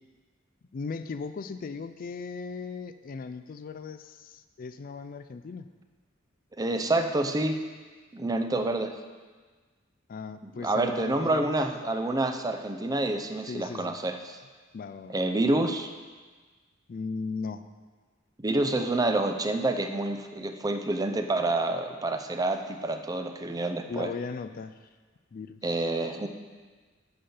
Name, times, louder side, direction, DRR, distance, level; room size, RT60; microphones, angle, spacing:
voice 1, 0.7-5.7 10.1-11.5 13.5-14.0 14.7-15.2 16.9-17.7 23.9-24.8 25.3-26.0, left 4 dB, 45° left, 11 dB, 0.4 m, -37 dB
voice 2, 6.6-7.6 8.1-8.9 10.4-14.4 15.1-15.9 18.4-24.1 25.6-26.3, right 2 dB, 20° right, 6 dB, 0.5 m, -28 dB
8.7 x 6.9 x 5.6 m, 1.4 s
head